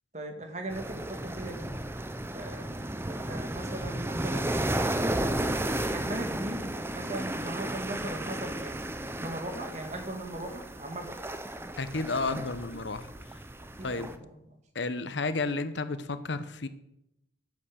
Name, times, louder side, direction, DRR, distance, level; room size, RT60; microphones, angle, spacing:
voice 1, 0.1-1.7 2.3-4.6 5.1-8.8 9.2-11.2 13.8-14.3, right 1 dB, 40° right, 4 dB, 1.8 m, -39 dB
sound 1, 0.7-14.2, right 1 dB, 15° right, 0.6 m, -34 dB
voice 2, 11.8-13.1 13.8-14.1 14.7-16.7, left 3 dB, 75° left, 12 dB, 0.9 m, -32 dB
10.0 x 8.4 x 6.4 m, 0.83 s
head